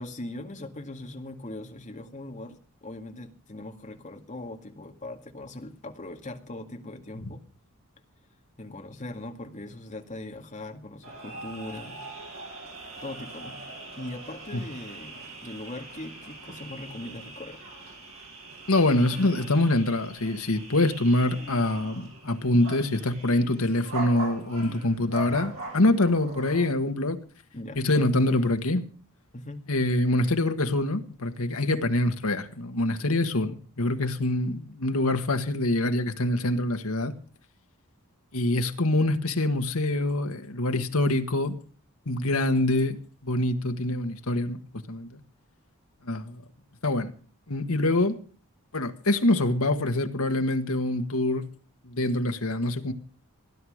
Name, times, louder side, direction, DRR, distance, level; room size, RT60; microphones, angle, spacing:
voice 1, 0.0-7.4 8.6-12.0 13.0-13.6 13.9-17.6 27.5-28.5 29.3-29.7, left 1 dB, 35° left, 2.0 m, -40 dB
sound 1, 11.0-26.7, right 2 dB, 65° right, 7.5 m, -42 dB
voice 2, 18.7-27.2 27.7-28.8 29.7-37.1 38.3-41.6 42.0-43.0 43.2-44.6 44.9-45.2 46.0-46.4 46.8-47.1 47.5-48.2 48.7-51.4 51.8-52.9, left 2 dB, 70° left, 1.6 m, -25 dB
17.0 x 11.0 x 6.5 m
head